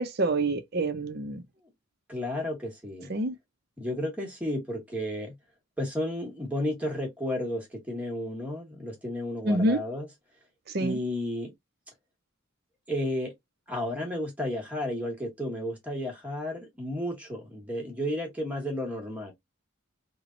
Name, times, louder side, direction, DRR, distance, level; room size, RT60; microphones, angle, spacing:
voice 1, 0.0-1.4 3.1-3.3 9.4-9.8 10.7-11.0, right 2 dB, 50° right, 0.6 m, -27 dB
voice 2, 2.1-3.1 3.8-5.4 5.8-10.1 10.8-11.5 12.9-13.3 13.7-19.3, left 1 dB, 5° right, 1.3 m, -32 dB
3.3 x 2.2 x 3.7 m
head